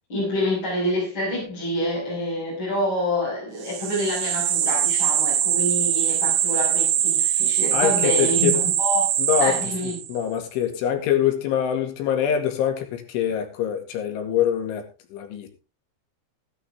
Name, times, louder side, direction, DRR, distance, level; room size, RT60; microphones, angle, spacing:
voice 1, 0.1-9.1 9.4-10.0, left 1 dB, 25° left, -5 dB, 6.2 m, -27 dB
sound 1, 3.6-10.2, right 10 dB, 65° right, 3.0 m, -22 dB
voice 2, 7.7-8.5 9.2-9.6 10.1-14.8 15.1-15.5, left 9 dB, 85° left, 5 dB, 4.5 m, -24 dB
16.5 x 11.0 x 3.5 m, 0.29 s
omnidirectional pair, 5.3 m